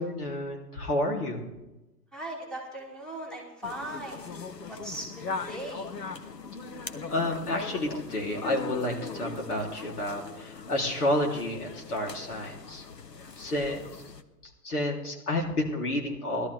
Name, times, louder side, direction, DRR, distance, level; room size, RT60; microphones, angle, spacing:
voice 1, 0.0-1.4 7.1-12.9 13.4-13.8 14.6-16.5, left 1 dB, 65° left, 0 dB, 3.6 m, -30 dB
voice 2, 2.1-4.3 4.7-5.9, right 1 dB, ahead, -2 dB, 2.5 m, -38 dB
sound 1, 3.6-14.2, left 4 dB, 85° left, 1.1 m, -40 dB
19.5 x 13.0 x 3.5 m, 1.0 s
figure-of-eight pair, 125°, 48 cm